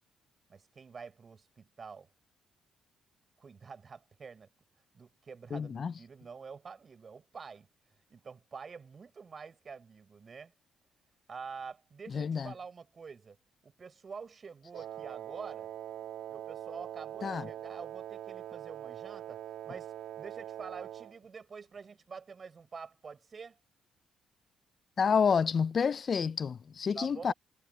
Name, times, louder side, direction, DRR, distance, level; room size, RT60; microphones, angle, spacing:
voice 1, 0.5-2.1 3.4-4.5 4.9-7.7 8.1-10.5 11.3-13.4 13.6-15.7 16.3-23.6 26.9-27.3, right 5 dB, 40° right, 5.5 m, -47 dB
voice 2, 5.5-5.9 12.1-12.5 17.2-17.5 25.0-27.3, left 6 dB, 45° left, 0.4 m, -29 dB
Wind instrument woodwind instrument, 14.7-21.2, right 12 dB, 80° right, 2.0 m, -43 dB
cardioid pair, 90°, 0 cm